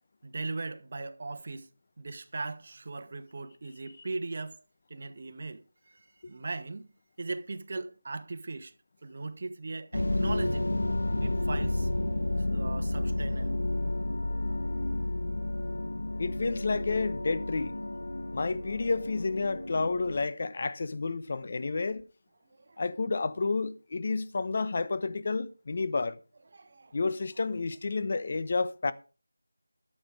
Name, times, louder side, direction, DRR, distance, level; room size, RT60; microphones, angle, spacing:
voice 1, 0.2-1.7 2.0-4.6 4.9-6.9 7.2-8.7 9.0-10.7 11.2-11.9 12.4-13.5 22.4-22.8 26.5-27.0, right 3 dB, 40° right, 1.3 m, -39 dB
sound 1, 9.9-20.3, left 1 dB, 75° left, 2.0 m, -31 dB
voice 2, 16.2-17.8 18.3-22.0 22.8-26.2 26.9-28.9, left 3 dB, 35° left, 1.1 m, -30 dB
13.5 x 8.8 x 5.1 m
figure-of-eight pair, 170°, 0 cm